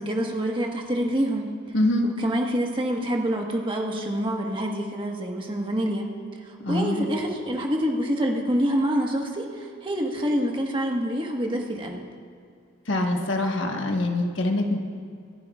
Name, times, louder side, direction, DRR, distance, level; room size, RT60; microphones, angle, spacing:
voice 1, 0.0-1.5 2.0-6.1 6.4-12.0, equal, 25° right, 1 dB, 1.4 m, -26 dB
voice 2, 1.7-2.1 6.6-7.1 12.9-14.8, left 1 dB, 75° left, 2 dB, 1.4 m, -24 dB
26.0 x 11.0 x 2.4 m, 2.2 s
head